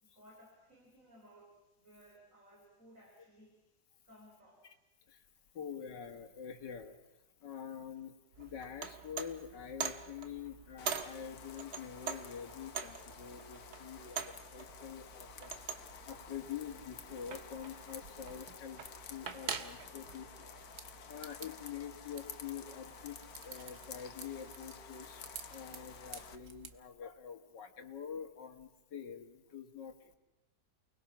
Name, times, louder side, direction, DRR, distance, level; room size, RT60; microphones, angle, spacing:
voice 1, 0.0-3.6 4.0-4.7 13.8-14.3 19.0-21.9, equal, 50° right, 0 dB, 4.7 m, -62 dB
voice 2, 5.5-7.0 7.4-15.5 16.0-18.8 19.1-20.3 21.1-23.2 23.4-25.2 25.5-30.1, left 8 dB, 85° left, 6 dB, 2.3 m, -46 dB
sound 1, 8.3-26.8, right 7 dB, 65° right, 1.8 m, -46 dB
sound 2, 10.8-26.4, left 7 dB, 60° left, 1.6 m, -52 dB
29.0 x 20.5 x 6.0 m, 1.0 s
omnidirectional pair, 1.8 m